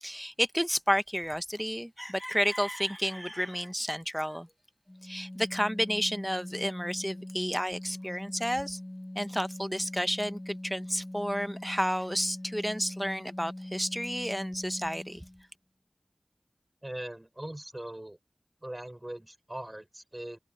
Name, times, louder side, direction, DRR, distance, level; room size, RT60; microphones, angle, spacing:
voice 1, 0.0-4.5 5.0-8.8 9.1-15.2, equal, ahead, 0.8 m, -31 dB
Organ, 4.9-15.5, left 1 dB, 25° left, 1.9 m, -42 dB
voice 2, 16.8-18.2 18.6-20.4, right 1 dB, 25° right, 4.5 m, -40 dB
wide cardioid pair, 55°, 0 cm